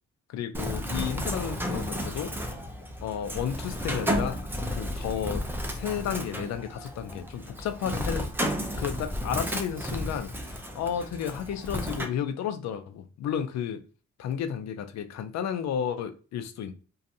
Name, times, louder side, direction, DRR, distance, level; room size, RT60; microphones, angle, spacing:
voice 1, 0.3-2.3 3.0-4.4 4.7-5.4 5.7-8.5 8.8-13.8 14.2-16.7, left 8 dB, 60° left, 8 dB, 0.5 m, -32 dB
Bird, 0.5-12.0, equal, 5° right, 0.5 m, -32 dB
2.6 x 2.3 x 2.6 m, 0.36 s
cardioid pair, 90°, 30 cm